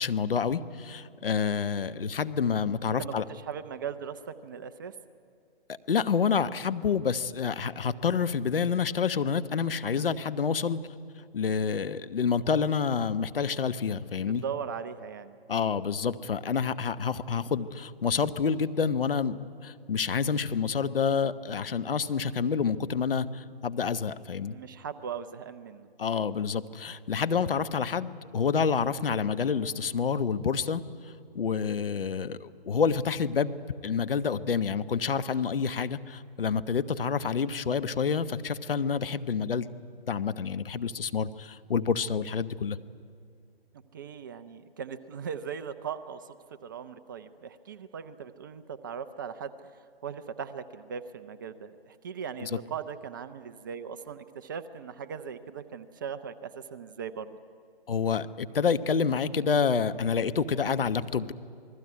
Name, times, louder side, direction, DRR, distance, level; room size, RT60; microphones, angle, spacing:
voice 1, 0.0-3.2 5.9-10.8 11.3-14.4 15.5-19.4 19.6-24.6 26.0-30.8 31.3-33.5 33.8-39.7 40.1-42.8 52.4-52.5 57.9-61.3, left 6 dB, 65° left, 13 dB, 1.1 m, -28 dB
voice 2, 3.0-4.9 14.3-15.3 24.4-25.9 43.9-46.4 46.6-49.5 50.0-57.4, right 7 dB, 20° right, 11 dB, 0.6 m, -39 dB
27.5 x 20.0 x 9.6 m, 2.3 s
figure-of-eight pair, 145°, 30 cm